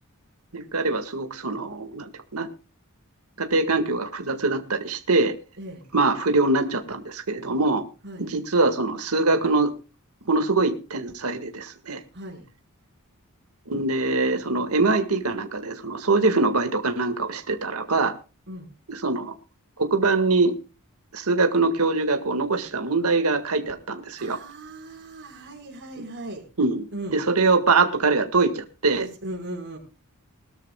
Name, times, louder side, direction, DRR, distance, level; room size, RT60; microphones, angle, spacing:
voice 1, 0.5-2.5 3.4-5.3 5.9-7.8 8.2-9.7 10.3-12.0 13.7-18.1 18.9-19.3 19.8-20.5 21.1-24.4 26.6-26.9 27.1-29.1, right 3 dB, 75° right, 6 dB, 1.9 m, -23 dB
voice 2, 5.6-5.9 8.0-8.3 12.1-12.5 18.5-18.7 24.2-26.4 26.9-27.2 29.0-29.8, right 1 dB, 55° right, 2 dB, 5.6 m, -37 dB
21.0 x 13.0 x 2.3 m, 0.33 s
head